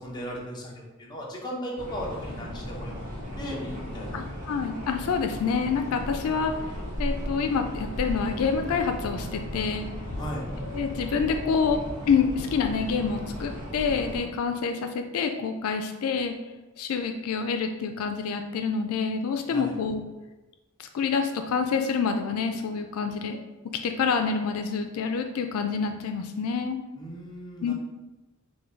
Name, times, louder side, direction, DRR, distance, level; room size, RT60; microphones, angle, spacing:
voice 1, 0.0-3.0 3.4-4.2 10.2-10.5 19.5-19.7 27.0-27.7, equal, 20° left, -3 dB, 0.7 m, -36 dB
sound 1, 1.8-14.2, equal, 40° right, 1.0 m, -36 dB
voice 2, 4.1-6.5 7.0-9.9 10.7-11.8 12.1-16.3 16.8-20.0 20.8-23.4 23.8-26.8 27.6-27.7, left 5 dB, 80° left, 5 dB, 0.4 m, -27 dB
3.7 x 2.2 x 4.3 m, 1.1 s
head